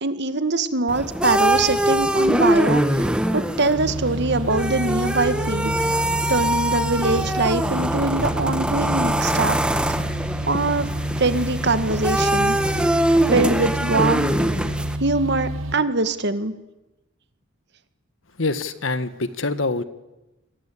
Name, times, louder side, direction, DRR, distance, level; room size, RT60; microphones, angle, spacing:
voice 1, 0.0-5.7 6.3-9.6 9.9-10.1 10.5-10.9 11.2-12.6 13.3-14.3 15.0-16.5, right 3 dB, 60° right, 11 dB, 2.0 m, -23 dB
sound 1, 0.9-15.0, right 1 dB, 5° right, 1.5 m, -23 dB
sound 2, 3.7-15.8, right 1 dB, 90° right, 1.4 m, -29 dB
voice 2, 18.4-19.8, left 3 dB, 80° left, 13 dB, 1.7 m, -25 dB
29.0 x 22.5 x 8.7 m, 1.0 s
head